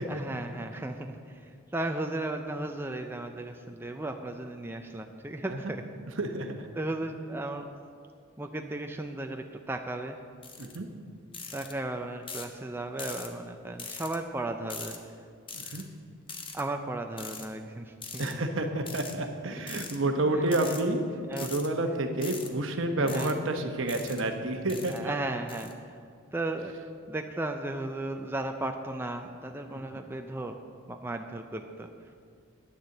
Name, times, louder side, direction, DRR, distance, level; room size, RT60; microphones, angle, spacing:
voice 1, 0.1-5.8 6.8-7.7 8.4-10.2 11.5-15.0 15.6-15.8 16.5-18.4 19.7-19.8 20.3-20.4 20.6-20.8 21.3-21.5 23.0-23.3 24.9-25.9 26.3-26.7 27.1-30.5 30.9-31.9, right 2 dB, 10° right, 4 dB, 0.4 m, -35 dB
voice 2, 6.2-6.7 10.6-10.9 15.5-15.8 18.2-21.0 21.4-25.1, right 2 dB, 65° right, 5 dB, 1.0 m, -29 dB
sound 1, 10.4-10.8 11.3-11.7 12.3-12.5 13.0-13.3 13.8-14.2 14.7-15.0 15.5-15.8 16.3-16.6 17.2-17.5 18.0-18.3 18.9-19.2 19.7-20.0 20.5-20.8 21.3-21.7 22.2-22.5 23.1-23.3 23.9-24.2 24.7-25.0 25.5-25.7, left 5 dB, 25° left, 0.8 m, -41 dB
9.8 x 6.7 x 7.7 m, 2.2 s
head